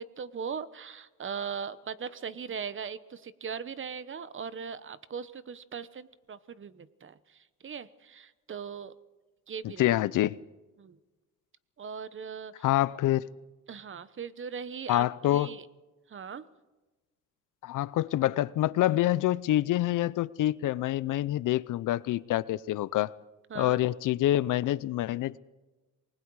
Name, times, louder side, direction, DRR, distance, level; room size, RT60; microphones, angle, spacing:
voice 1, 0.0-8.9 9.5-9.9 10.8-11.0 11.8-12.7 13.7-15.7 16.1-16.5 23.5-23.8, right 6 dB, 40° right, 1.0 m, -39 dB
voice 2, 9.8-10.4 12.6-13.3 14.9-15.5 17.6-23.1 23.6-25.4, left 14 dB, 75° left, 0.6 m, -26 dB
27.5 x 20.0 x 4.8 m
cardioid pair, 105°, 31 cm